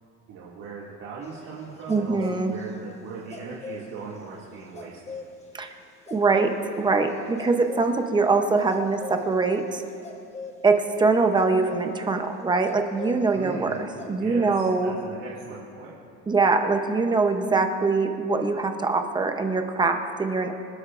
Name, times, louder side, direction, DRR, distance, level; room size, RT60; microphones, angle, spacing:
voice 1, 0.3-5.1 13.3-13.9 14.2-15.9, right 5 dB, 65° right, -7 dB, 2.2 m, -39 dB
sound 1, 1.2-2.7 3.3-3.9 4.7-5.4 6.1-6.9 7.2-7.9 8.5-9.3 10.0-10.6 11.4-11.9 12.6-13.5 13.7-14.1, left 5 dB, 20° left, 1.1 m, -39 dB
voice 2, 1.9-2.5 5.5-5.7 6.1-9.8 10.6-13.8 14.1-14.9 16.3-20.5, right 3 dB, 15° right, 5 dB, 0.7 m, -23 dB
27.5 x 12.0 x 2.5 m, 2.5 s
cardioid pair, 170°, 31 cm